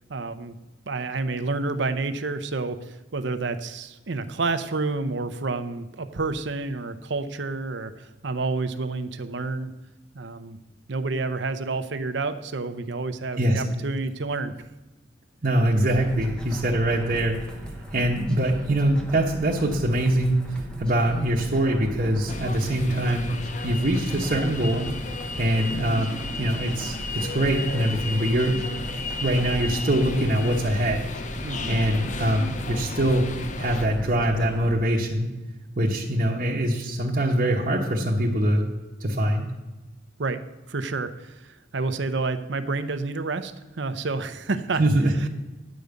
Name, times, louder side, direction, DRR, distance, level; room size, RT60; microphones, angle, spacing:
voice 1, 0.1-0.6 0.9-9.7 10.1-10.6 10.9-14.5 31.4-31.8 40.2-40.4 40.7-44.8 45.2-45.3, right 3 dB, 65° right, 10 dB, 0.7 m, -29 dB
voice 2, 15.4-17.4 17.9-20.4 20.8-23.3 23.6-24.9 25.4-28.7 29.2-31.1 31.7-33.2 33.6-35.3 35.8-38.6 39.0-39.5 44.8-45.3, right 1 dB, 40° right, -5 dB, 1.1 m, -23 dB
sound 1, 15.9-34.8, equal, 5° left, 0.9 m, -39 dB
sound 2, 22.3-33.9, left 3 dB, 40° left, 0.5 m, -34 dB
9.5 x 5.2 x 8.1 m, 1.1 s
head